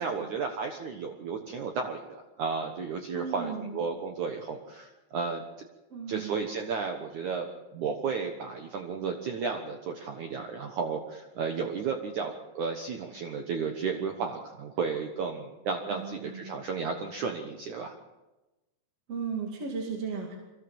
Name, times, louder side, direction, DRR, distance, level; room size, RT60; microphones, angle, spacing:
voice 1, 0.0-5.4 6.1-17.9, right 5 dB, 85° right, 4 dB, 1.7 m, -33 dB
voice 2, 3.1-3.8 5.9-6.4 15.9-16.5 19.1-20.4, right 5 dB, 40° right, 0 dB, 2.6 m, -36 dB
24.5 x 16.5 x 7.2 m, 1.1 s
omnidirectional pair, 5.6 m